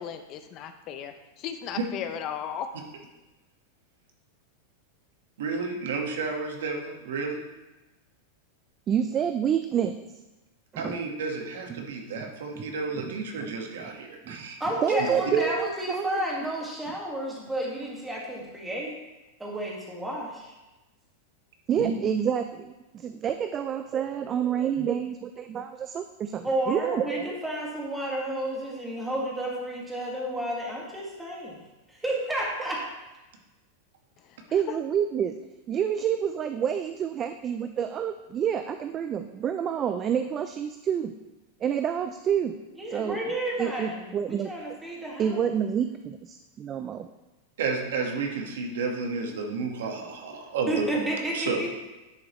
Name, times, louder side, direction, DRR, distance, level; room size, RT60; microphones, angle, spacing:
voice 1, 0.0-2.7, left 8 dB, 35° left, 8 dB, 0.5 m, -36 dB
voice 2, 5.4-7.4 10.8-14.6 21.7-21.9 47.6-51.1 51.3-51.6, right 4 dB, 80° right, 2 dB, 1.4 m, -31 dB
voice 3, 8.9-10.0 10.7-11.0 11.7-11.9 12.1-12.3 12.6-13.1 13.5-13.9 14.2-14.5 14.8-16.2 21.7-27.4 34.5-35.4 35.7-41.2 41.6-42.6 42.9-44.5 45.2-47.1, right 8 dB, 25° right, 8 dB, 0.3 m, -28 dB
voice 4, 14.6-18.9 19.4-20.5 26.4-31.6 31.9-32.8 42.8-45.4 50.7-51.8, right 1 dB, 5° right, -3 dB, 1.7 m, -31 dB
10.5 x 5.0 x 3.1 m, 1.1 s
supercardioid pair, 145°, 0 cm